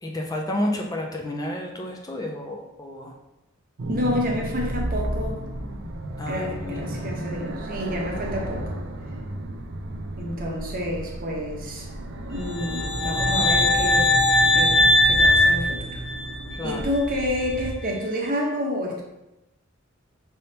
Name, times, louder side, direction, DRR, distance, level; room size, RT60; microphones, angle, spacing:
voice 1, 0.0-3.2 6.2-7.0 16.6-16.9, left 1 dB, 20° left, 1 dB, 0.4 m, -31 dB
sound 1, 3.8-17.7, right 1 dB, 60° right, 0.5 m, -32 dB
voice 2, 3.9-5.5 6.3-8.8 10.2-11.9 12.3-14.2 14.5-16.0 16.6-19.0, left 1 dB, 45° right, 0 dB, 0.9 m, -29 dB
sound 2, 12.5-16.5, left 1 dB, 70° left, 1.0 m, -20 dB
5.4 x 3.5 x 2.8 m, 0.95 s
head